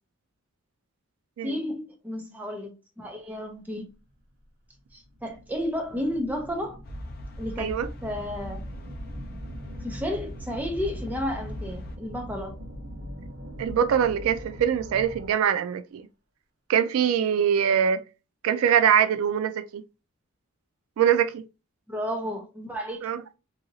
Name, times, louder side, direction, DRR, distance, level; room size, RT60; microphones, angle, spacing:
voice 1, 1.4-3.9 4.9-6.8 7.4-8.6 9.8-12.5 21.9-23.0, equal, 10° right, 0.6 m, -32 dB
sound 1, 4.1-4.2 4.8-15.5, equal, 55° right, 0.8 m, -42 dB
sound 2, 6.8-12.0, left 1 dB, 45° left, 0.5 m, -40 dB
voice 2, 13.6-16.0 16.7-18.0 18.4-19.8 21.0-21.4 23.0-23.2, right 8 dB, 85° right, 0.3 m, -23 dB
2.7 x 2.7 x 2.6 m
head